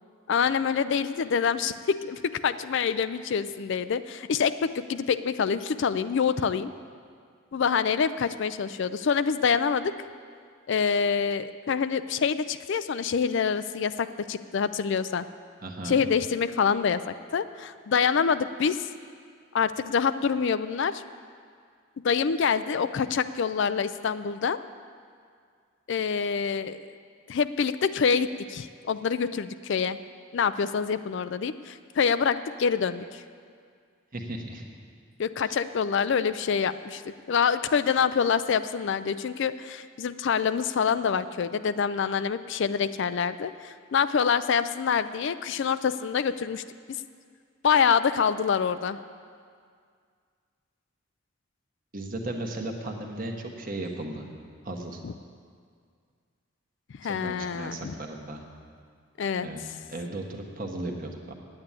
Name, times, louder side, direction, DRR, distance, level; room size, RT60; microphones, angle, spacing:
voice 1, 0.3-6.7 7.5-9.9 10.7-15.2 15.8-18.9 19.5-21.0 22.0-24.6 25.9-26.9 27.3-30.0 30.3-33.2 35.2-46.6 47.6-49.0 55.0-55.1 57.0-57.9 59.2-59.5, left 6 dB, 55° left, 13 dB, 0.4 m, -26 dB
voice 2, 15.6-16.1 34.1-34.6 35.5-35.6 51.9-54.3 54.6-55.0 57.0-58.4 59.4-59.6 59.9-61.3, right 1 dB, 40° right, 2 dB, 1.2 m, -35 dB
9.7 x 8.8 x 8.9 m, 2.1 s
head